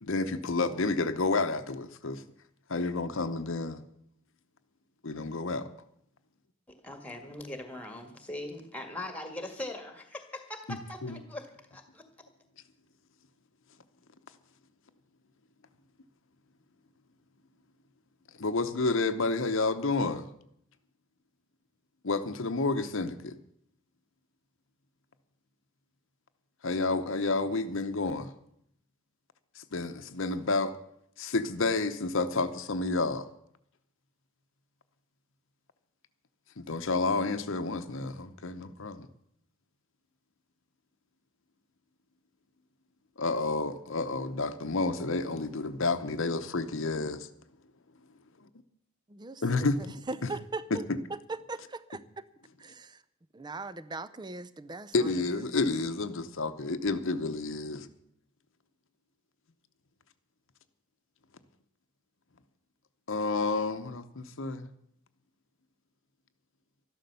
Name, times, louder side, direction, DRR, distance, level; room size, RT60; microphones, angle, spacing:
voice 1, 0.0-2.2 2.7-3.8 5.0-5.7 10.7-10.8 11.0-11.2 18.4-20.3 22.0-23.4 26.6-28.3 29.6-30.7 31.2-33.3 36.6-39.1 43.2-47.3 49.4-49.8 54.9-57.9 63.1-64.7, left 3 dB, 60° left, 9 dB, 0.9 m, -30 dB
voice 2, 6.7-12.0, left 1 dB, 5° left, 7 dB, 1.8 m, -41 dB
voice 3, 49.1-50.8 51.1-52.3 52.6-53.0 53.3-55.6, right 3 dB, 20° right, 15 dB, 0.5 m, -40 dB
13.0 x 12.0 x 6.8 m, 0.73 s
head